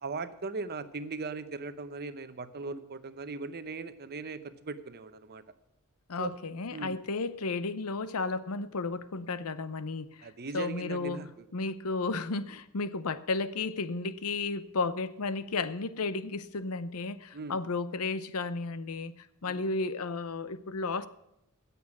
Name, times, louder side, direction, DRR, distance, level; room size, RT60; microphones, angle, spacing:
voice 1, 0.0-5.4 6.2-6.3 6.7-7.0 10.2-11.5 17.3-17.6 19.5-19.6, right 3 dB, 45° right, 12 dB, 0.8 m, -39 dB
voice 2, 6.1-10.3 10.5-11.2 11.5-21.1, left 3 dB, 75° left, 14 dB, 0.7 m, -33 dB
17.0 x 6.9 x 6.1 m, 0.85 s
head